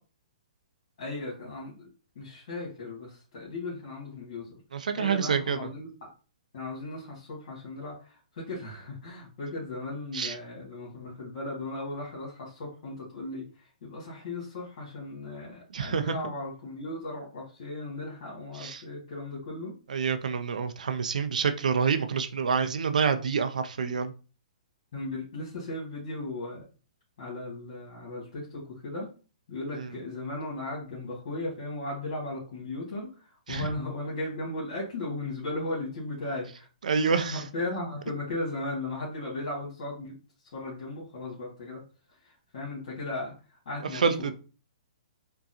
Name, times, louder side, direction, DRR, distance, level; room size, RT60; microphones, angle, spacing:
voice 1, 1.0-1.9 2.1-4.5 4.9-5.9 6.5-19.7 24.9-26.6 27.2-29.1 29.5-36.7 37.0-40.1 40.5-41.8 42.2-44.0, left 2 dB, 55° left, -4 dB, 1.6 m, -36 dB
voice 2, 4.7-5.7 10.1-10.3 15.7-16.2 18.6-18.8 19.9-24.1 29.8-29.9 33.5-33.7 36.8-37.4 43.9-44.3, right 6 dB, 75° right, 9 dB, 0.5 m, -27 dB
3.8 x 2.3 x 2.6 m, 0.35 s
hypercardioid pair, 130°, 4 cm